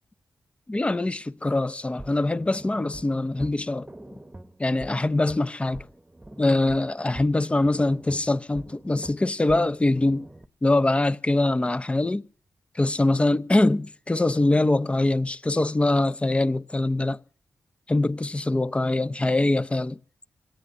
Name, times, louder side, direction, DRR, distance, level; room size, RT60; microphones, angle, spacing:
voice 1, 0.7-3.9 4.6-5.8 6.4-10.3 10.6-12.2 12.7-17.2 17.9-20.0, left 2 dB, 20° left, 0.7 m, -23 dB
sound 1, 1.9-10.5, right 1 dB, 15° right, 1.1 m, -45 dB
27.5 x 18.0 x 2.6 m
cardioid pair, 75°, 6 cm